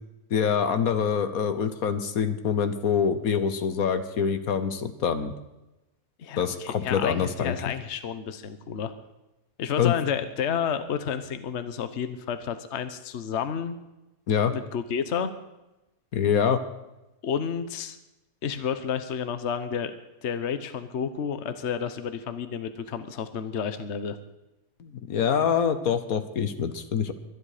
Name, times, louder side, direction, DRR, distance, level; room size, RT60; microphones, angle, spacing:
voice 1, 0.3-5.3 6.4-7.6 9.8-9.9 14.3-14.5 16.1-16.6 24.8-27.1, left 7 dB, 70° left, 10 dB, 1.5 m, -25 dB
voice 2, 6.2-8.9 9.6-13.8 14.5-15.3 17.2-18.0 18.4-19.9 20.2-24.2, left 7 dB, 50° left, 10 dB, 1.2 m, -30 dB
24.0 x 10.0 x 5.0 m, 0.98 s
omnidirectional pair, 1.6 m